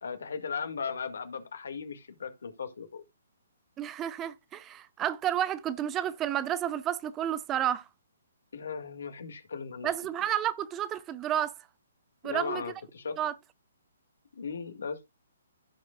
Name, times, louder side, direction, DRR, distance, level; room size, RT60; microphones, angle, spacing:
voice 1, 0.0-3.0 8.5-9.9 12.2-13.2 14.4-15.0, left 5 dB, 70° left, 1.9 m, -37 dB
voice 2, 3.8-7.8 9.8-11.5 12.2-12.6 13.2-13.3, right 11 dB, 20° right, 0.6 m, -31 dB
15.5 x 5.3 x 2.3 m
hypercardioid pair, 135°, 0 cm